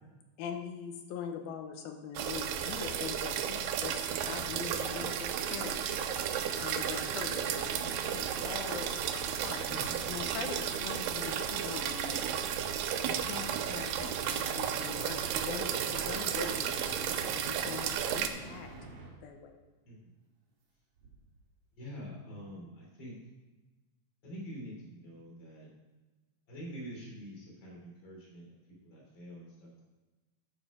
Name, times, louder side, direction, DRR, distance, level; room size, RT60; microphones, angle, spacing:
voice 1, 0.4-5.9 6.6-8.9 9.1-9.6 10.1-12.4 13.0-18.7 19.2-19.6, left 7 dB, 90° left, 4 dB, 2.8 m, -42 dB
sound 1, 2.2-18.3, right 9 dB, 80° right, 2.1 m, -33 dB
sound 2, 4.1-19.2 21.0-21.4, right 2 dB, 50° right, 2.1 m, -48 dB
voice 2, 9.7-10.0 19.8-20.1 21.7-23.2 24.2-25.7 26.5-29.8, equal, 30° left, -4 dB, 3.9 m, -46 dB
11.0 x 7.3 x 5.0 m, 1.2 s
omnidirectional pair, 4.2 m